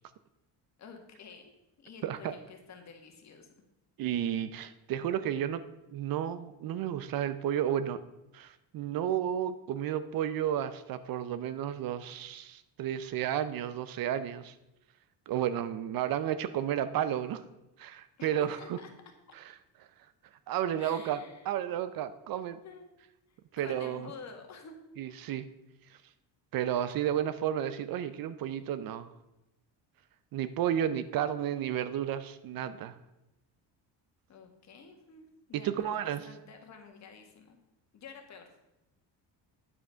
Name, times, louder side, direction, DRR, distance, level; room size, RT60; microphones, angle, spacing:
voice 1, 0.8-3.5 18.2-18.9 20.8-21.5 22.6-22.9 23.3-24.7 34.3-37.6 37.9-38.5, left 5 dB, 40° left, 4 dB, 1.5 m, -50 dB
voice 2, 2.0-2.3 4.0-5.6 5.9-8.0 8.3-14.5 15.3-17.4 17.8-18.8 20.5-22.6 23.5-24.1 25.0-25.5 26.5-29.1 30.3-32.9 35.5-36.3, right 10 dB, 55° right, 13 dB, 0.5 m, -32 dB
9.5 x 5.8 x 5.6 m, 0.95 s
cardioid pair, 155°, 43 cm